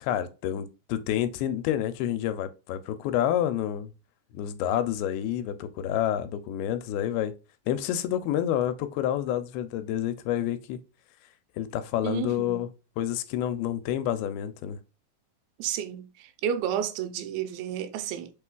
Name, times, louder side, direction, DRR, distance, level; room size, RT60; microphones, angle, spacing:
voice 1, 0.0-3.9 4.3-7.3 7.7-10.8 11.6-12.7 13.0-14.8, left 11 dB, 85° left, 2.4 m, -28 dB
voice 2, 12.0-12.6 15.6-18.3, right 9 dB, 85° right, 2.5 m, -31 dB
6.1 x 3.1 x 2.2 m
omnidirectional pair, 4.3 m